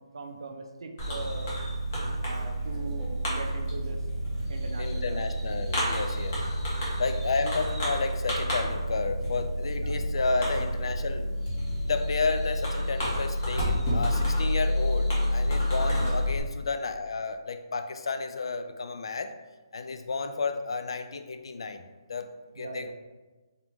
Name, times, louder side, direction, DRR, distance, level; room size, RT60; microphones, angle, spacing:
voice 1, 0.1-1.6 2.2-4.0 4.5-5.2 9.8-9.9 16.0-16.2 22.6-22.9, right 3 dB, 70° right, 4 dB, 0.4 m, -40 dB
Fireworks, 1.0-16.4, equal, 35° left, 1.2 m, -29 dB
voice 2, 4.8-6.4 7.0-11.3 11.8-19.3 19.7-21.8 22.1-22.3 22.5-22.9, left 4 dB, 70° left, 8 dB, 0.4 m, -31 dB
3.5 x 2.9 x 3.4 m, 1.2 s
hypercardioid pair, 170°, 3 cm